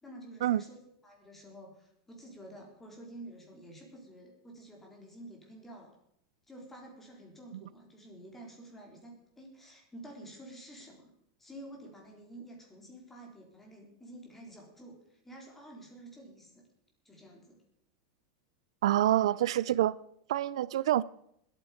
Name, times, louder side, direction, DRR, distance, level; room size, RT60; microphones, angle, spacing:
voice 1, 0.0-0.8 1.0-6.0 6.5-11.1 11.4-16.7 17.0-17.6, right 1 dB, 10° left, 3.8 m, -50 dB
voice 2, 18.8-20.0 20.3-21.0, right 12 dB, 90° right, 0.4 m, -27 dB
20.5 x 9.0 x 5.1 m
supercardioid pair, 160°, 3 cm